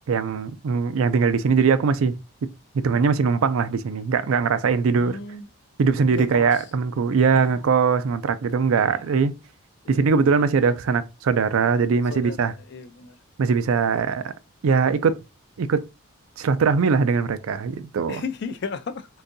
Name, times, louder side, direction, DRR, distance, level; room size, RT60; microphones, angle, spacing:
voice 1, 0.1-2.1 2.7-5.2 5.8-9.3 9.9-12.5 13.4-14.3 14.6-15.2 15.6-15.8 16.4-18.2, right 5 dB, 70° right, 0.4 m, -21 dB
voice 2, 4.9-5.5 6.1-6.5 7.3-7.6 8.8-9.3 9.8-10.0 12.1-13.2 18.1-19.1, left 5 dB, 50° left, 0.4 m, -35 dB
3.8 x 2.6 x 2.5 m
head